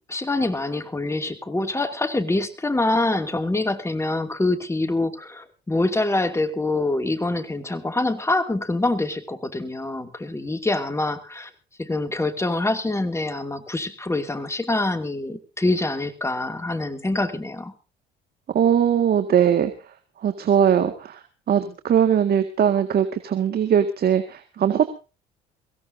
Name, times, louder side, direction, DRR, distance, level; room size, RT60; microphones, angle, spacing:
voice 1, 0.1-11.5 11.8-17.7, left 2 dB, 15° left, 8 dB, 2.6 m, -25 dB
voice 2, 18.5-19.7 20.2-25.0, right 8 dB, 50° right, 8 dB, 2.0 m, -20 dB
22.5 x 16.5 x 2.7 m, 0.32 s
supercardioid pair, 80°, 20 cm